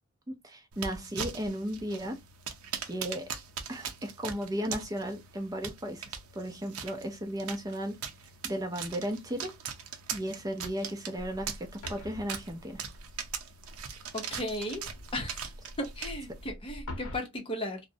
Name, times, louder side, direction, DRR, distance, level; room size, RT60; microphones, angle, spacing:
voice 1, 0.3-2.2 2.8-3.3 3.7-8.0 8.4-9.5 10.1-12.8, equal, 15° right, 0.4 m, -35 dB
sound 1, 0.7-16.5, right 7 dB, 70° right, 0.5 m, -41 dB
sound 2, 11.2-17.2, left 1 dB, 85° left, 0.7 m, -45 dB
voice 2, 14.1-14.8 15.1-15.4 15.8-17.8, left 1 dB, 25° left, 0.7 m, -35 dB
2.4 x 2.0 x 2.5 m
head